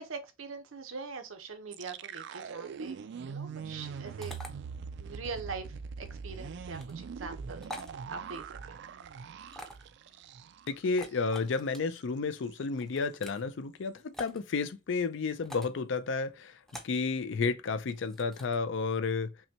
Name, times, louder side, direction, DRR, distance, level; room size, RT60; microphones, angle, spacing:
voice 1, 0.0-3.0 3.2-4.3 5.0-5.7 6.0-8.8, right 4 dB, 85° right, 0.7 m, -42 dB
sound 1, 1.7-10.7 11.0-11.2 11.6-12.0, right 6 dB, 60° right, 0.3 m, -42 dB
sound 2, 4.2-4.5 6.7-6.9 7.6-7.9 9.5-9.9 10.8-11.8 12.8-13.4 14.1-14.4 15.4-15.8 16.7-17.0 17.9-18.6, equal, ahead, 0.6 m, -45 dB
voice 2, 10.7-16.5 16.8-19.3, left 4 dB, 65° left, 0.5 m, -31 dB
5.6 x 2.2 x 2.8 m
head